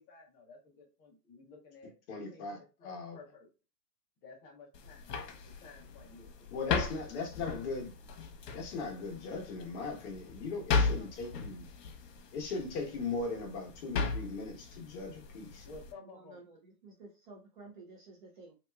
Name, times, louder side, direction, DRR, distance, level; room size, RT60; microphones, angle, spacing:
voice 1, 0.0-3.5 4.2-6.8 15.6-16.4, left 3 dB, 20° left, 0.7 m, -54 dB
voice 2, 2.1-2.6 2.8-3.2 6.5-7.9 8.5-11.6 12.3-15.7, left 3 dB, 45° left, 1.1 m, -38 dB
sound 1, 4.7-15.9, left 4 dB, 80° left, 1.0 m, -37 dB
voice 3, 16.1-18.5, right 3 dB, 35° right, 0.4 m, -53 dB
3.3 x 2.8 x 2.2 m
supercardioid pair, 155°, 47 cm